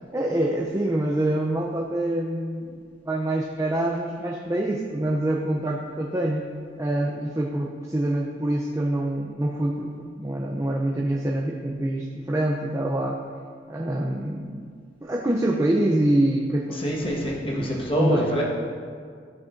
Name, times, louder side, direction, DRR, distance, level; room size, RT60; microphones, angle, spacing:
voice 1, 0.1-6.5 6.8-13.2 13.7-14.6 15.0-16.8 17.5-18.2, right 1 dB, 15° right, -1 dB, 0.4 m, -25 dB
voice 2, 16.7-18.4, equal, 30° left, -3 dB, 1.3 m, -25 dB
13.0 x 5.9 x 2.5 m, 2.1 s
head